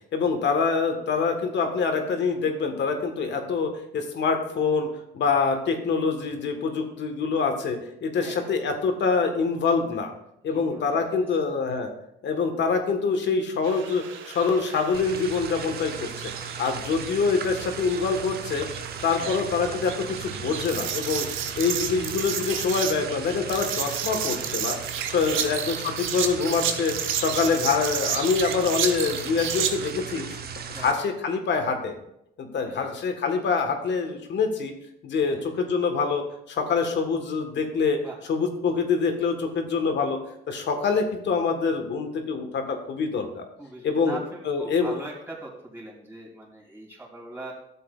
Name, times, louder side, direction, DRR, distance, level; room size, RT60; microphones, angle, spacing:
voice 1, 0.1-4.9 5.1-10.1 10.4-11.9 12.2-16.1 16.6-18.7 19.0-21.3 21.6-24.8 25.1-30.4 30.7-32.0 32.4-34.7 35.0-38.0 38.3-40.2 40.5-43.4 43.8-44.2 44.4-44.9, left 5 dB, 65° left, 5 dB, 1.5 m, -25 dB
voice 2, 8.2-8.5 10.5-11.3 16.7-16.8 19.2-19.3 25.3-25.6 30.7-31.0 32.7-32.9 35.2-35.5 38.0-38.2 43.6-47.5, right 2 dB, 10° right, -4 dB, 3.0 m, -41 dB
sound 1, 13.6-29.9, right 8 dB, 80° right, 0.8 m, -32 dB
sound 2, 14.9-30.9, right 6 dB, 50° right, 0.8 m, -37 dB
12.5 x 7.6 x 2.4 m, 0.79 s
cardioid pair, 90°, 20 cm